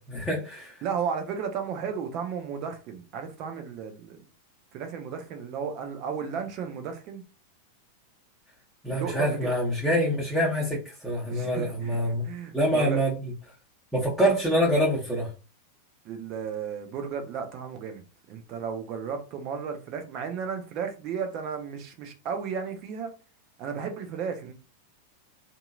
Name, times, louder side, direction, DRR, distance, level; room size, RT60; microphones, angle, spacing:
voice 1, 0.0-0.8 8.8-12.3 12.5-13.1 13.9-15.3, equal, ahead, 1.0 m, -25 dB
voice 2, 0.8-4.2 4.7-7.2 8.9-9.5 11.3-13.0 16.0-23.1 23.6-24.5, right 6 dB, 40° right, 0.7 m, -34 dB
2.8 x 2.7 x 2.3 m
figure-of-eight pair, 90°, 0 cm